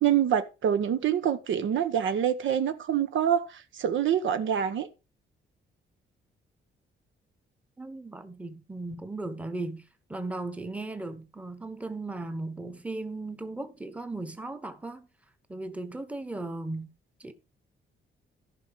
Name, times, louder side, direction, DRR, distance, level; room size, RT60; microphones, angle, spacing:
voice 1, 0.0-4.9, right 9 dB, 75° right, 1.2 m, -26 dB
voice 2, 7.8-9.8 10.1-15.1 15.5-16.9 17.2-17.3, right 2 dB, 5° right, 1.0 m, -36 dB
14.5 x 5.5 x 4.8 m
cardioid pair, 150°, 20 cm